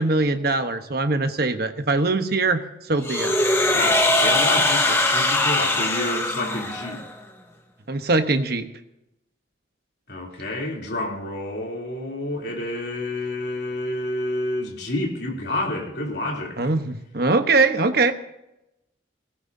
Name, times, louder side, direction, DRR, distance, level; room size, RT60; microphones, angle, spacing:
voice 1, 0.0-2.6 2.9-3.3 7.9-8.7 16.6-18.1, right 3 dB, 50° right, 7 dB, 1.1 m, -22 dB
sound 1, 3.0-7.1, left 2 dB, 15° left, 1.3 m, -21 dB
voice 2, 3.7-7.0 10.1-16.7, left 1 dB, 60° left, -1 dB, 3.4 m, -29 dB
19.0 x 18.5 x 2.8 m, 0.88 s
head